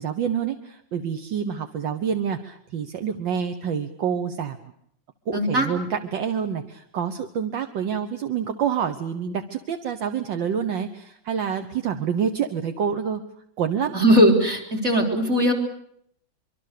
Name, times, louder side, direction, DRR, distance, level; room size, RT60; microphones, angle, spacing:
voice 1, 0.0-4.6 5.3-13.2 13.6-13.9, right 7 dB, 70° right, 7 dB, 1.8 m, -27 dB
voice 2, 5.3-5.7 13.9-15.5, equal, 35° right, 2 dB, 4.3 m, -19 dB
24.5 x 24.0 x 6.7 m, 0.70 s
omnidirectional pair, 2.1 m